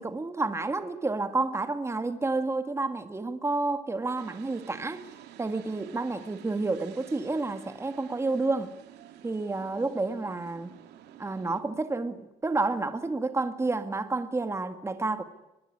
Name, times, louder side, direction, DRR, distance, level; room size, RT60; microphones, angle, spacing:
voice 1, 0.0-5.0 5.4-8.7 9.2-10.7 11.2-15.2, right 3 dB, 15° right, 1.9 m, -30 dB
sound 1, 4.1-11.6, right 11 dB, 80° right, 2.9 m, -51 dB
23.5 x 21.0 x 9.8 m
cardioid pair, 110°, 17 cm